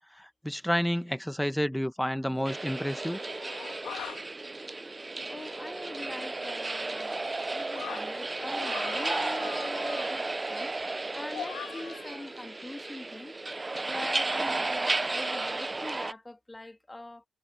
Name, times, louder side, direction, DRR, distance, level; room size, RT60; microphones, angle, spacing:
voice 1, 0.1-3.2, equal, 5° left, 1.1 m, -30 dB
sound 1, 1.4-1.5 2.3-4.2 5.3-8.0 8.5-10.4 11.3-12.6, left 11 dB, 85° left, 1.7 m, -44 dB
sound 2, 2.4-16.1, right 2 dB, 30° right, 0.5 m, -33 dB
voice 2, 5.3-13.3 13.8-17.3, left 2 dB, 20° left, 2.5 m, -43 dB
supercardioid pair, 50°, 0 cm